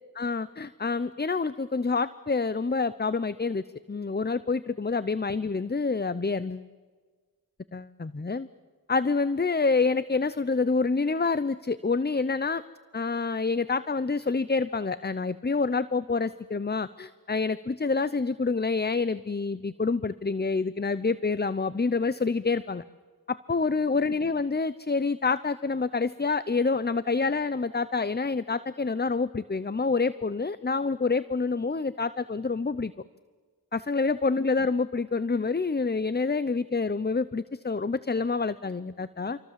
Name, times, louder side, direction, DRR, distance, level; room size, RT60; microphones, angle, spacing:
voice 1, 0.1-6.7 7.7-8.5 8.9-12.6 12.9-22.8 23.3-32.9 33.7-39.4, left 4 dB, 30° left, 15 dB, 0.7 m, -27 dB
28.0 x 24.0 x 7.5 m, 1.5 s
wide cardioid pair, 45°, 35 cm